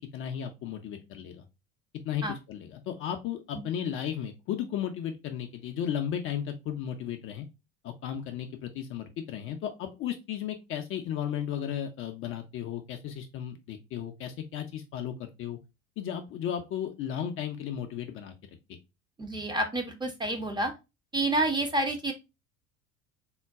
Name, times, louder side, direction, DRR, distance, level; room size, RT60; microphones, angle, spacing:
voice 1, 0.1-1.4 2.0-7.5 7.8-15.6 16.0-18.3 18.7-18.8, left 9 dB, 35° left, 5 dB, 0.5 m, -35 dB
voice 2, 19.2-20.7 21.1-22.1, right 1 dB, 10° right, 4 dB, 0.6 m, -28 dB
3.7 x 2.2 x 3.4 m, 0.25 s
figure-of-eight pair, 70°, 41 cm